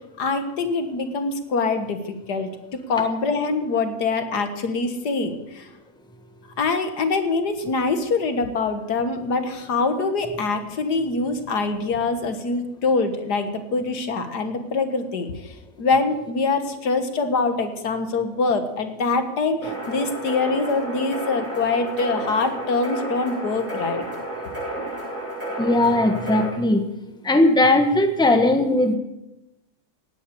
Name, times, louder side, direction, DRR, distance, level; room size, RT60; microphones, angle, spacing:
voice 1, 0.2-2.5 2.9-5.7 6.6-24.0, left 3 dB, 80° left, 8 dB, 2.0 m, -24 dB
sound 1, 19.6-26.5, right 1 dB, 50° right, 8.2 m, -31 dB
voice 2, 25.6-26.8 27.2-28.9, left 1 dB, 5° left, 6 dB, 1.2 m, -18 dB
17.0 x 9.8 x 6.9 m, 0.93 s
omnidirectional pair, 1.7 m